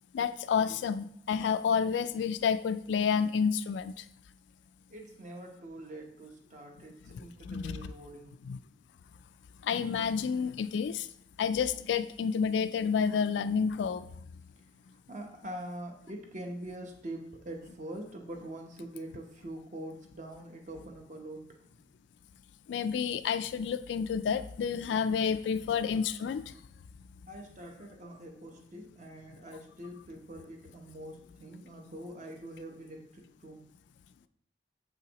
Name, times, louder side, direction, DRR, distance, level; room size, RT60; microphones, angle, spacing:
voice 1, 0.1-4.0 7.1-7.9 8.4-8.6 9.6-11.1 11.4-14.1 22.7-26.5, left 6 dB, 80° left, 13 dB, 0.3 m, -30 dB
voice 2, 4.9-8.4 15.1-21.8 27.3-33.6, right 1 dB, 45° right, 2 dB, 0.9 m, -44 dB
7.1 x 5.6 x 3.0 m, 0.71 s
head